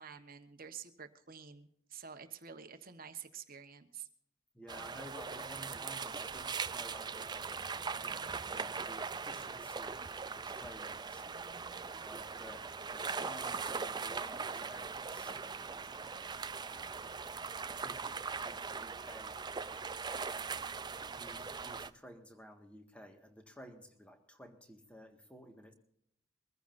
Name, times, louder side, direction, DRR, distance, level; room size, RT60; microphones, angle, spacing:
voice 1, 0.0-4.1, right 7 dB, 45° right, 7 dB, 1.2 m, -49 dB
voice 2, 4.5-7.7 8.0-10.0 10.3-11.3 12.0-15.8 16.7-17.0 17.8-19.9 20.5-20.7 21.1-25.7, equal, 5° left, 4 dB, 1.7 m, -54 dB
sound 1, 4.7-21.9, right 5 dB, 20° right, 0.4 m, -40 dB
23.0 x 15.0 x 2.6 m, 0.73 s
head